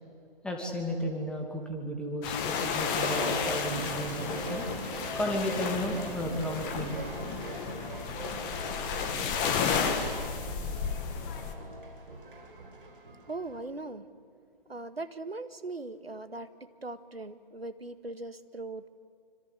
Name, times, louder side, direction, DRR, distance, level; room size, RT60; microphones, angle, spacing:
voice 1, 0.4-4.6 5.1-7.0, equal, 5° left, 1 dB, 2.4 m, -33 dB
sound 1, 2.2-11.5, left 6 dB, 20° left, 2.1 m, -32 dB
sound 2, 3.0-13.7, right 2 dB, 60° right, 5.7 m, -41 dB
voice 2, 13.3-14.1 14.7-18.9, right 2 dB, 90° right, 11 dB, 1.8 m, -40 dB
26.5 x 25.5 x 8.5 m, 2.3 s
figure-of-eight pair, 145°, 30 cm